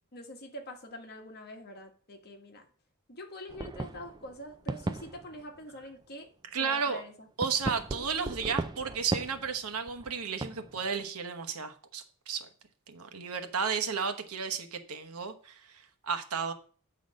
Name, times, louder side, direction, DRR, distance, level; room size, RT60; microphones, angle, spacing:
voice 1, 0.1-2.6 3.1-6.3 6.6-7.3, left 1 dB, 45° left, 1.5 m, -45 dB
sound 1, 3.5-5.8 7.4-10.9, right 2 dB, 20° right, 0.4 m, -37 dB
voice 2, 6.5-7.0 7.4-12.5 12.9-16.5, right 6 dB, 75° right, 1.0 m, -33 dB
8.5 x 4.0 x 6.2 m
head